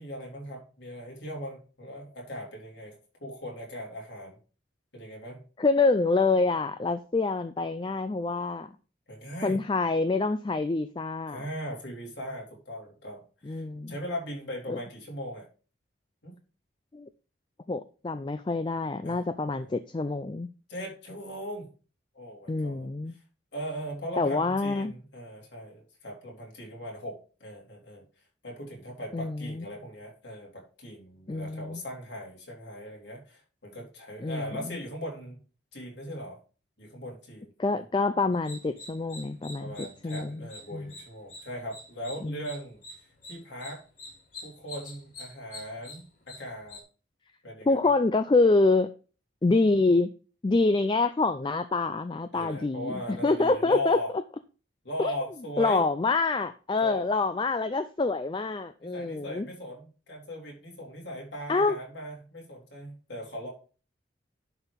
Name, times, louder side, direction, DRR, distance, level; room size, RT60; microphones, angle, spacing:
voice 1, 0.0-4.4 4.9-5.4 9.1-9.6 11.3-15.5 16.2-16.3 19.0-19.7 20.7-21.7 22.1-23.2 23.5-28.0 28.4-35.4 35.7-36.4 36.8-37.5 37.8-37.9 39.6-42.8 43.3-43.8 44.4-46.8 47.4-47.9 52.3-54.1 54.8-55.8 56.8-57.0 58.8-63.5, equal, 70° left, 3.8 m, -39 dB
voice 2, 5.6-8.7 9.4-11.4 13.5-14.0 14.7-14.8 16.9-17.1 17.7-20.5 22.5-23.2 24.2-24.9 29.1-29.7 31.3-31.8 34.2-34.8 37.6-40.4 40.7-40.9 42.2-42.4 47.7-48.9 49.4-50.1 50.4-54.0 55.0-55.1 55.6-59.5 61.5-61.8, left 3 dB, 25° left, 0.4 m, -26 dB
sound 1, 38.3-46.8, left 2 dB, 45° left, 3.1 m, -46 dB
11.0 x 4.5 x 5.1 m
head